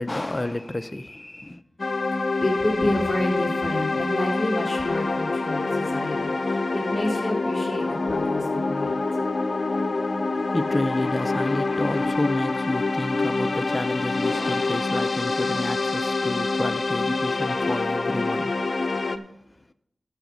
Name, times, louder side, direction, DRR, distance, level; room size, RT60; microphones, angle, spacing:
voice 1, 0.0-1.6 10.3-18.6, left 2 dB, 30° left, 0.7 m, -29 dB
sound 1, 1.8-19.2, left 3 dB, 55° left, 0.8 m, -26 dB
voice 2, 2.1-8.9, left 1 dB, 10° left, 4.5 m, -29 dB
12.5 x 5.0 x 7.1 m
cardioid pair, 40°, 0 cm